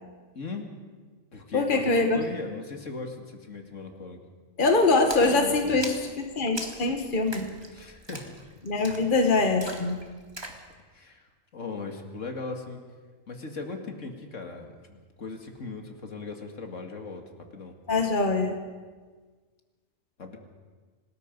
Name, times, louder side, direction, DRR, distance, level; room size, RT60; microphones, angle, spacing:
voice 1, 0.3-0.8 1.3-4.2 5.2-5.9 7.7-8.3 10.9-11.3 11.5-12.8 13.3-17.2 17.5-17.7 20.2-20.4, left 4 dB, 75° left, 4 dB, 2.5 m, -38 dB
voice 2, 1.5-2.2 4.6-7.5 8.6-10.0 17.9-18.6, left 3 dB, 40° left, 4 dB, 1.8 m, -23 dB
Splash splatter, 5.1-10.6, right 1 dB, 20° right, 2.1 m, -41 dB
26.5 x 19.5 x 5.3 m, 1.4 s
omnidirectional pair, 1.3 m